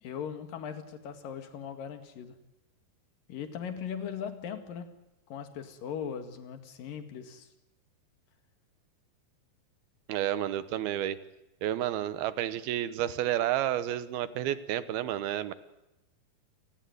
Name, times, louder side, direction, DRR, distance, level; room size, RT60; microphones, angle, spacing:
voice 1, 0.0-2.4 3.3-4.9 5.3-7.5, left 7 dB, 70° left, 8 dB, 3.6 m, -39 dB
voice 2, 10.1-11.2 11.6-15.5, right 12 dB, 90° right, 14 dB, 3.1 m, -30 dB
28.5 x 18.5 x 9.4 m, 0.96 s
omnidirectional pair, 4.3 m